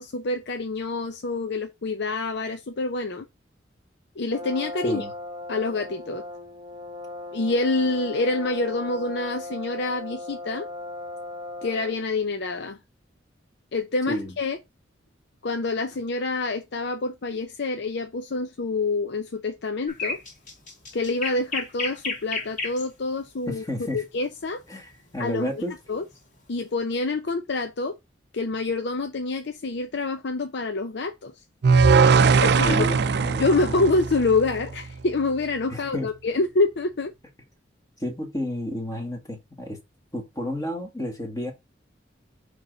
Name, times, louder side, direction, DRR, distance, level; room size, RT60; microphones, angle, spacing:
voice 1, 0.0-3.3 4.2-5.1 5.5-6.2 7.3-10.7 11.6-12.8 13.7-14.6 15.4-20.2 20.9-23.6 23.9-24.6 25.2-25.5 25.9-26.0 26.5-27.9 28.3-31.3 32.4-32.9 33.4-37.1, left 3 dB, 65° left, 0.6 m, -26 dB
Brass instrument, 4.3-12.1, left 2 dB, 20° right, 1.5 m, -37 dB
sound 1, 19.9-22.9 24.9-25.2, left 3 dB, 45° left, 2.8 m, -31 dB
voice 2, 23.5-24.0 24.7-25.7 32.6-33.9 35.7-36.1 38.0-39.8 40.1-41.5, equal, 20° left, 1.8 m, -31 dB
sound 2, 31.6-34.8, right 5 dB, 65° right, 0.5 m, -19 dB
9.0 x 3.5 x 3.9 m
head